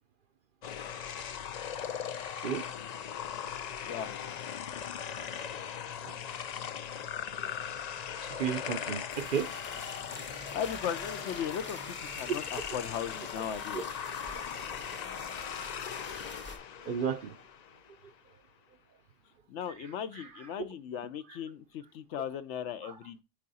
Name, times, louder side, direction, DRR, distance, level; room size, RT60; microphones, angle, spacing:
sound 1, 0.6-17.9, left 8 dB, 90° left, 0.3 m, -39 dB
voice 1, 8.2-9.5 13.7-13.8 16.8-17.4 19.8-19.9 20.1-20.3 22.8-22.9, right 7 dB, 55° right, 0.6 m, -34 dB
sound 2, 9.1-16.6, left 1 dB, 10° left, 0.7 m, -47 dB
voice 2, 10.5-13.8 19.5-23.2, left 8 dB, 70° left, 0.9 m, -37 dB
8.5 x 3.7 x 4.1 m
omnidirectional pair, 1.3 m